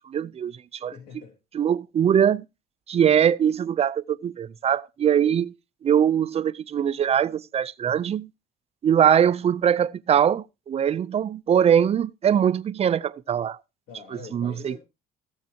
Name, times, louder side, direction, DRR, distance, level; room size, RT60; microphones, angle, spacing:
voice 1, 0.1-0.9 1.5-2.4 2.9-5.5 5.8-8.3 8.8-13.6 14.3-14.8, right 8 dB, 40° right, 0.6 m, -22 dB
voice 2, 0.9-1.4 13.9-14.8, left 5 dB, 85° left, 3.5 m, -43 dB
16.5 x 7.3 x 2.9 m
cardioid pair, 110°, 17 cm